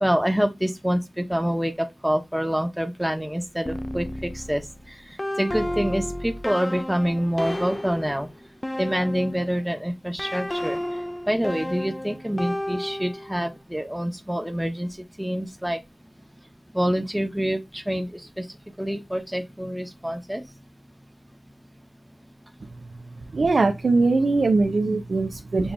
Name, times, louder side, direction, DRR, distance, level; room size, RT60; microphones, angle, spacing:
voice 1, 0.0-8.3 8.8-11.0 11.3-15.8 16.7-18.5 18.8-20.4 24.8-25.0, equal, 5° right, 0.9 m, -26 dB
sound 1, 3.7-9.6 10.2-13.4, left 1 dB, 25° left, 0.5 m, -32 dB
voice 2, 23.3-25.7, right 3 dB, 90° right, 0.6 m, -21 dB
7.1 x 2.9 x 2.5 m
cardioid pair, 40°, 0 cm